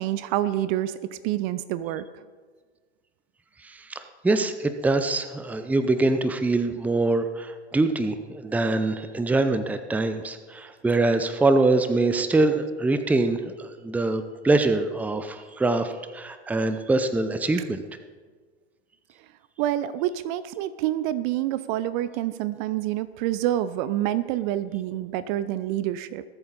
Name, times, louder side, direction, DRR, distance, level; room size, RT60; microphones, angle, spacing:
voice 1, 0.0-2.1 17.6-17.7 19.6-26.2, right 13 dB, 45° right, 15 dB, 0.6 m, -27 dB
voice 2, 3.6-17.8, right 2 dB, 5° right, 10 dB, 0.6 m, -24 dB
20.0 x 8.6 x 4.2 m, 1.5 s
figure-of-eight pair, 90°, 34 cm